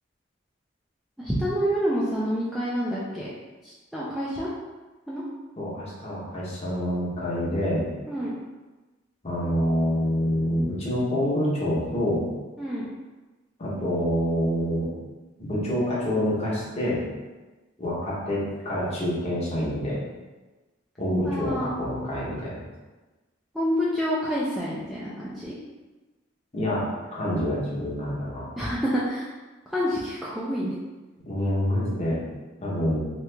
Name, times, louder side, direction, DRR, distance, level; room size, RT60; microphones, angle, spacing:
voice 1, 1.2-3.3 3.6-4.5 5.1-5.2 8.1-8.3 12.6-12.9 21.2-21.8 23.5-25.6 28.6-29.3 29.7-30.8, equal, ahead, -8 dB, 0.3 m, -28 dB
voice 2, 5.6-7.9 9.2-12.2 13.6-14.9 15.4-17.0 17.8-20.0 21.0-22.6 26.5-28.5 31.3-32.2 32.6-33.0, equal, 30° left, -7 dB, 0.9 m, -27 dB
3.0 x 2.4 x 3.3 m, 1.2 s
head